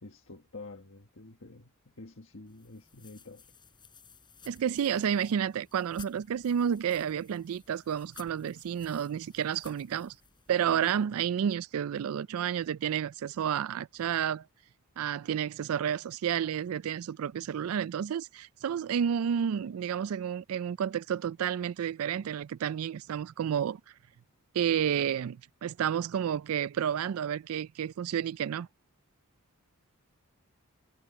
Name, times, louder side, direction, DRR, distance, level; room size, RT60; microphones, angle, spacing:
voice 1, 0.0-3.5, left 3 dB, 60° left, 1.5 m, -48 dB
sound 1, 2.5-11.1, left 5 dB, 20° left, 4.0 m, -56 dB
voice 2, 4.5-10.1 10.5-14.4 15.0-23.8 24.5-28.7, right 8 dB, 75° right, 0.3 m, -30 dB
head